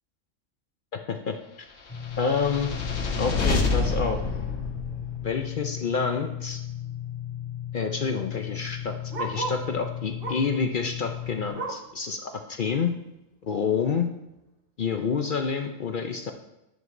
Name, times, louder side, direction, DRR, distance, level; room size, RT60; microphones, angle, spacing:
voice 1, 0.9-1.4 2.2-2.7 3.2-4.2 5.2-6.6 7.7-12.9 13.4-14.1 14.8-16.3, left 5 dB, 55° left, 5 dB, 0.6 m, -28 dB
sound 1, 1.9-11.5, left 11 dB, 35° left, 1.8 m, -35 dB
sound 2, 2.0-5.4, left 3 dB, 85° left, 1.3 m, -28 dB
Bark, 6.9-9.7 10.2-10.6 11.0-12.0 12.4-12.5 12.9-13.0 13.7-13.8, right 3 dB, 50° right, 1.1 m, -36 dB
10.5 x 7.7 x 2.6 m, 0.93 s
omnidirectional pair, 1.3 m